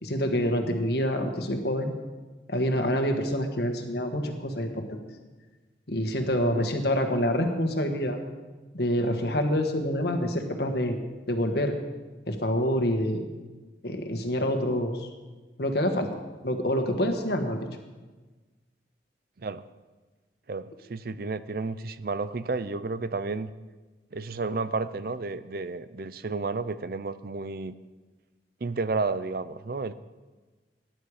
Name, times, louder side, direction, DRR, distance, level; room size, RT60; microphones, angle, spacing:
voice 1, 0.0-1.9 2.5-5.0 5.9-8.2 8.7-11.0 11.3-11.7 12.3-13.3 13.8-15.1 15.6-16.1 16.4-17.6, equal, 65° left, 5 dB, 1.6 m, -27 dB
voice 2, 6.4-6.7 19.4-19.6 20.5-23.5 24.1-27.7 28.6-29.9, right 3 dB, 55° right, 14 dB, 0.5 m, -32 dB
17.5 x 10.5 x 5.0 m, 1.3 s
head